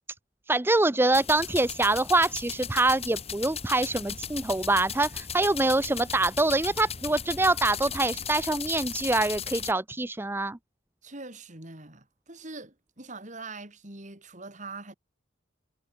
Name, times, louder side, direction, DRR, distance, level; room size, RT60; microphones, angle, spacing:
voice 1, 0.5-10.6, right 2 dB, 10° right, 0.6 m, -25 dB
sound 1, 1.1-9.7, left 7 dB, 35° left, 3.1 m, -37 dB
voice 2, 11.0-14.9, right 3 dB, 40° right, 4.4 m, -43 dB
head